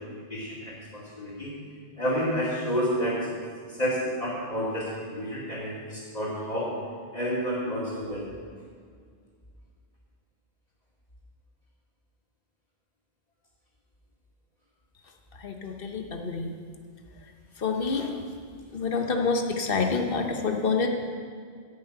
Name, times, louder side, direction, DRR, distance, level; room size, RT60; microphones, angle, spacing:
voice 1, 0.0-1.5 2.0-3.2 3.8-6.7 7.1-8.2, equal, 40° left, -9 dB, 2.5 m, -30 dB
voice 2, 15.4-16.5 17.6-18.1 18.7-20.9, left 4 dB, 65° left, 4 dB, 1.3 m, -27 dB
10.5 x 6.4 x 8.8 m, 2.1 s
omnidirectional pair, 1.0 m